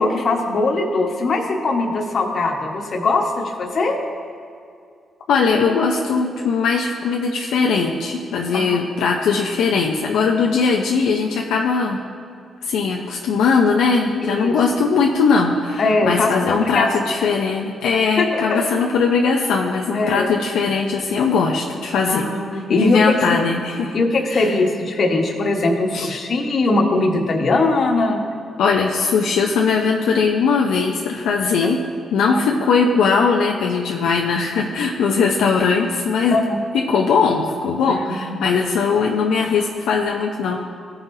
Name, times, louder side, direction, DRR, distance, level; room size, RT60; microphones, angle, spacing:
voice 1, 0.0-4.0 8.5-8.8 14.2-14.5 15.8-16.9 18.2-18.6 19.9-20.3 22.1-23.1 23.9-28.2 31.6-31.7 32.3-32.4 36.3-36.6 38.0-38.4, left 2 dB, 55° left, 1 dB, 1.2 m, -20 dB
voice 2, 5.3-12.0 12.6-22.3 22.7-24.0 24.3-24.5 25.9-26.1 28.6-31.8 32.1-36.4 36.7-40.6, left 5 dB, 85° left, 0 dB, 0.6 m, -19 dB
15.5 x 5.6 x 2.7 m, 2.3 s
cardioid pair, 85°, 0 cm